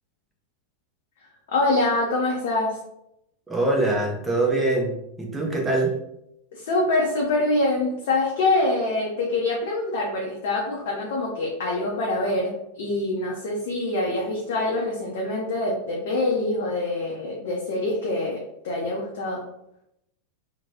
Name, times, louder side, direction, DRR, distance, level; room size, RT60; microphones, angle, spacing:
voice 1, 1.5-2.8 6.5-19.4, left 2 dB, 55° left, -2 dB, 0.5 m, -25 dB
voice 2, 3.5-4.9 5.2-6.0, right 2 dB, 10° right, -1 dB, 0.7 m, -23 dB
3.0 x 2.1 x 2.7 m, 0.81 s
figure-of-eight pair, 90°, 0 cm